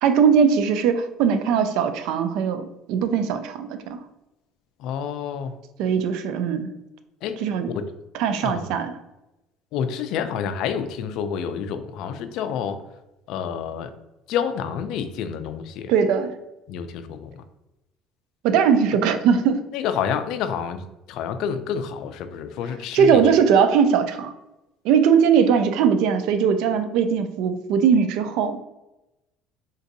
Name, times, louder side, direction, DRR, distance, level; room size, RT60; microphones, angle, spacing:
voice 1, 0.0-4.0 5.8-6.7 7.4-7.7 8.2-8.9 15.9-16.3 18.4-19.6 22.9-24.3 24.8-28.6, right 7 dB, 75° right, 9 dB, 0.3 m, -20 dB
voice 2, 4.8-5.5 7.2-7.8 8.4-8.8 9.7-12.8 13.3-13.9 14.3-15.9 16.7-17.5 19.7-20.8 21.1-23.2, left 7 dB, 65° left, 10 dB, 0.3 m, -28 dB
3.8 x 2.5 x 2.6 m, 0.94 s
cardioid pair, 140°, 0 cm